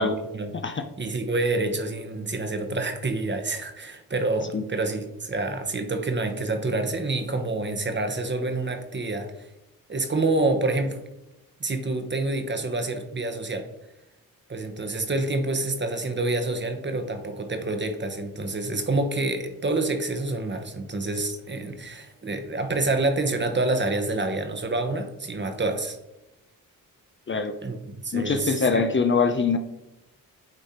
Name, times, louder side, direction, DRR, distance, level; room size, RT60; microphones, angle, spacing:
voice 1, 1.0-9.5 9.9-11.0 11.6-13.7 14.5-26.0 27.6-28.8, right 2 dB, 30° right, 6 dB, 1.0 m, -27 dB
voice 2, 28.1-29.6, left 4 dB, 35° left, 6 dB, 0.6 m, -23 dB
9.0 x 3.4 x 4.2 m, 0.92 s
cardioid pair, 75°, 36 cm